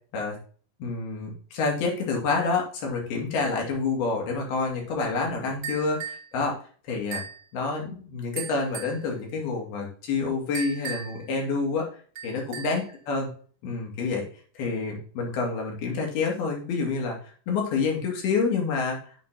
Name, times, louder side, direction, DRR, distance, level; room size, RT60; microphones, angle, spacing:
voice 1, 0.8-6.6 6.9-7.2 7.5-11.9 12.2-13.3 13.6-14.3 14.6-17.2 17.5-19.0, left 4 dB, 80° left, 0 dB, 4.4 m, -28 dB
sound 1, 5.6-6.3 7.1-7.4 8.4-9.0 10.5-11.3 12.2-12.9, right 6 dB, 45° right, 1.2 m, -36 dB
9.4 x 6.9 x 2.9 m, 0.42 s
omnidirectional pair, 4.4 m